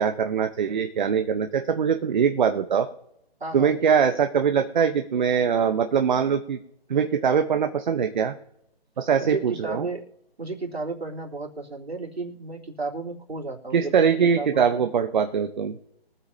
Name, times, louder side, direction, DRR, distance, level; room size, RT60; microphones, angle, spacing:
voice 1, 0.0-2.9 3.5-6.6 6.9-8.3 9.0-9.9 13.7-15.7, right 7 dB, 50° right, 7 dB, 1.0 m, -22 dB
voice 2, 3.4-3.8 9.2-10.0 10.4-14.8, right 3 dB, 90° right, -1 dB, 3.4 m, -33 dB
23.5 x 8.1 x 2.8 m, 0.79 s
hypercardioid pair, 155°, 31 cm